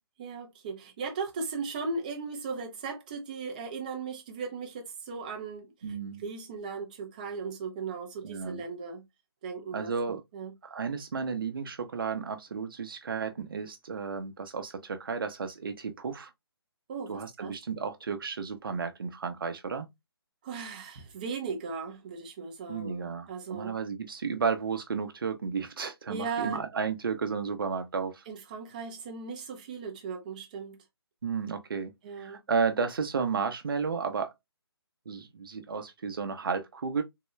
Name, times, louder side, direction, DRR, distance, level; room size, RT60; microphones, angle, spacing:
voice 1, 0.2-6.0 6.2-9.1 9.4-10.5 16.9-17.5 20.4-23.7 26.1-26.6 28.3-30.8 32.0-32.4, right 5 dB, 20° right, 0.6 m, -37 dB
voice 2, 5.8-6.2 8.2-8.6 9.7-10.2 10.6-16.3 17.1-19.9 22.7-28.2 31.2-31.9 32.2-34.3 35.1-37.0, right 5 dB, 60° right, 0.7 m, -33 dB
3.7 x 2.1 x 3.1 m
hypercardioid pair, 165°, 13 cm